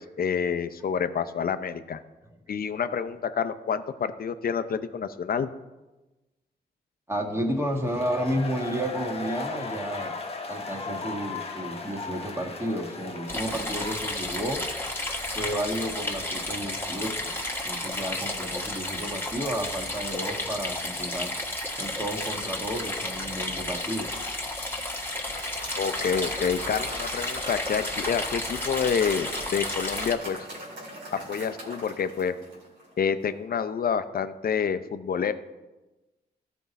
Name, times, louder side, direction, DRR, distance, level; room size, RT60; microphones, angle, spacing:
voice 1, 0.0-2.0 2.5-5.5 25.8-30.4 31.3-32.3 33.0-35.3, left 7 dB, 55° left, 12 dB, 0.6 m, -28 dB
voice 2, 7.1-10.2 10.5-14.6 15.3-17.4 17.6-21.4 21.8-24.1, equal, 15° right, 0 dB, 1.8 m, -32 dB
sound 1, 7.8-19.4, left 3 dB, 35° left, 1.1 m, -39 dB
sound 2, 13.3-30.1, left 1 dB, 10° left, 1.6 m, -32 dB
Applause / Crowd, 24.8-33.0, right 1 dB, 85° right, 2.1 m, -40 dB
13.5 x 4.6 x 4.1 m, 1.1 s
cardioid pair, 55°, 19 cm